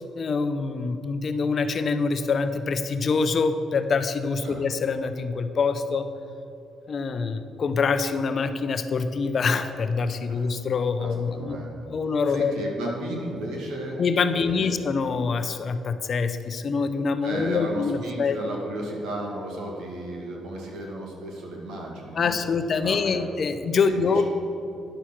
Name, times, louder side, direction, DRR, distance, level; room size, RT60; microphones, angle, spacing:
voice 1, 0.0-6.1 6.9-11.6 11.9-12.6 12.8-12.9 14.0-18.4 22.1-24.2, left 4 dB, 50° left, 9 dB, 0.6 m, -25 dB
voice 2, 11.0-11.7 12.3-14.0 14.3-14.6 17.2-23.2 23.8-24.2, right 1 dB, 85° right, -1 dB, 2.1 m, -34 dB
10.0 x 6.4 x 5.9 m, 2.8 s
cardioid pair, 90°, 0 cm